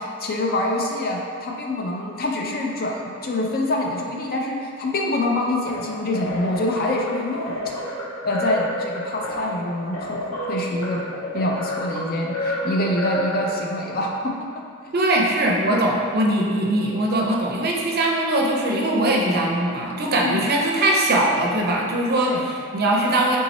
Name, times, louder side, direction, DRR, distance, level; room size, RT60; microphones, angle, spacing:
voice 1, 0.0-7.6 8.2-11.0 11.3-14.4 20.2-20.5 22.3-22.5, left 1 dB, 45° left, 0 dB, 0.5 m, -25 dB
sound 1, 5.7-13.9, left 1 dB, 80° left, 0.8 m, -29 dB
voice 2, 14.9-23.4, right 1 dB, 50° right, -1 dB, 0.5 m, -21 dB
4.0 x 3.6 x 3.0 m, 2.2 s
head